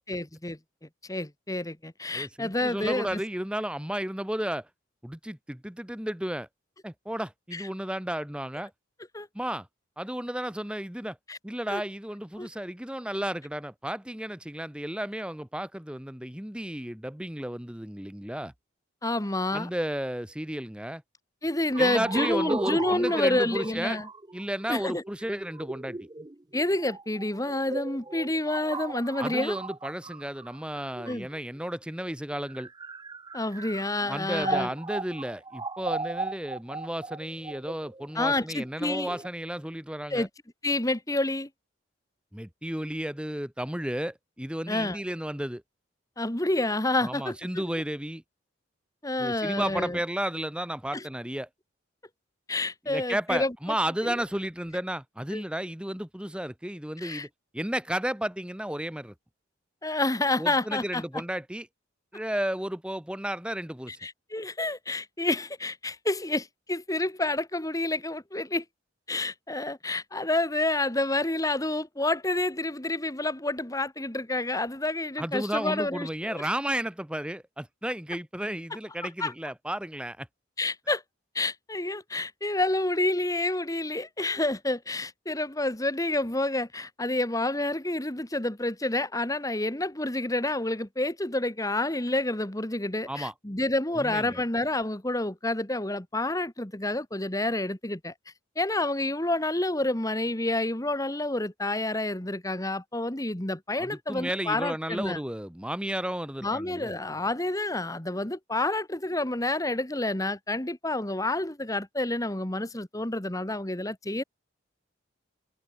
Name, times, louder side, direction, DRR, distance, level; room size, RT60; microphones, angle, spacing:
voice 1, 0.1-0.6 1.1-3.2 7.5-7.7 9.1-9.3 11.3-11.4 11.7-11.8 12.4-12.5 19.0-19.7 21.4-24.1 24.7-25.0 26.5-29.6 31.1-31.3 33.3-34.7 38.1-39.2 40.1-40.3 40.6-41.5 44.7-45.0 46.2-47.4 49.0-50.0 50.9-51.1 52.5-53.5 54.0-54.1 55.3-55.4 57.0-57.3 59.8-61.0 63.9-68.6 69.1-76.4 79.0-79.3 80.6-81.0 81.3-98.1 98.5-105.2 106.4-114.2, left 2 dB, 15° left, 1.5 m, -29 dB
voice 2, 2.1-4.7 5.0-6.5 6.8-8.7 9.3-9.7 10.0-11.2 11.4-18.5 19.5-21.0 21.8-24.0 24.3-26.1 29.2-32.7 34.1-40.3 42.3-45.6 47.0-48.2 49.2-51.5 52.9-57.3 57.5-59.1 60.4-61.7 62.1-64.0 75.2-80.3 93.1-93.3 93.9-94.4 103.8-106.9, right 1 dB, 5° right, 1.0 m, -33 dB
sound 1, 21.7-31.6 32.3-39.3, right 3 dB, 20° right, 0.6 m, -37 dB
head